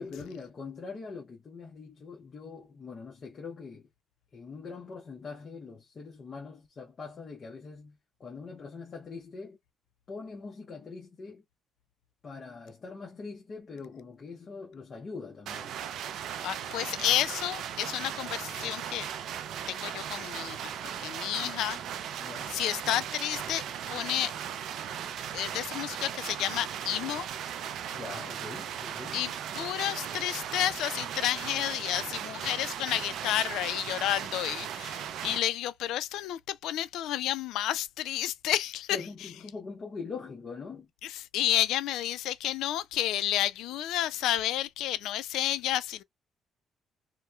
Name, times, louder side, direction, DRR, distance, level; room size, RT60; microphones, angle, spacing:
voice 1, 0.0-3.9 4.3-9.6 10.1-11.4 12.2-15.8 22.2-22.6 27.9-29.3 38.9-40.9, left 4 dB, 35° left, 0.7 m, -43 dB
sound 1, 15.5-35.4, right 9 dB, 65° right, 0.4 m, -37 dB
voice 2, 16.4-19.1 19.7-20.7 21.0-21.8 22.5-23.6 23.9-24.3 25.3-27.3 29.1-39.3 41.0-46.0, left 12 dB, 85° left, 0.3 m, -31 dB
2.9 x 2.1 x 2.3 m
cardioid pair, 140°, 0 cm